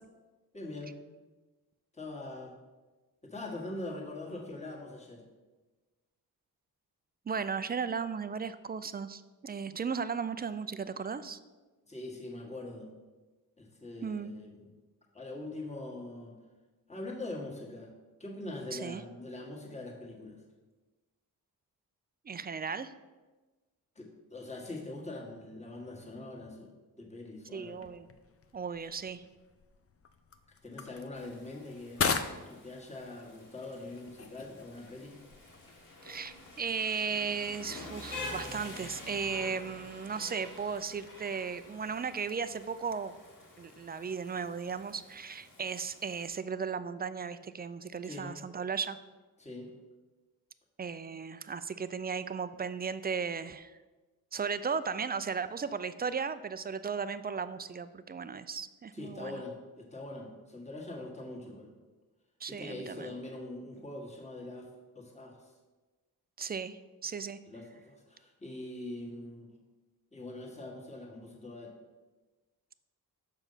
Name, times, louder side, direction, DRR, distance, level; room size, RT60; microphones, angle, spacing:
voice 1, 0.5-1.0 1.9-2.5 3.2-5.3 11.8-12.9 13.6-14.7 15.1-16.4 16.9-17.9 18.2-20.4 23.9-27.8 30.6-32.1 32.5-35.2 48.0-48.4 49.4-49.7 58.9-61.7 62.5-65.5 67.4-69.5 70.1-71.7, left 2 dB, 20° left, -2 dB, 1.6 m, -43 dB
voice 2, 7.3-11.4 14.0-14.3 18.7-19.0 22.3-22.9 27.5-28.1 28.5-29.2 36.0-43.1 43.6-49.0 50.8-53.8 54.3-59.4 62.4-63.1 66.4-67.4, right 5 dB, 25° right, 13 dB, 0.3 m, -36 dB
sound 1, 27.7-36.8, left 5 dB, 40° left, 0.6 m, -40 dB
Rain, 31.1-46.3, left 2 dB, 60° left, 1.9 m, -48 dB
6.6 x 5.0 x 5.6 m, 1.2 s
cardioid pair, 80°, 37 cm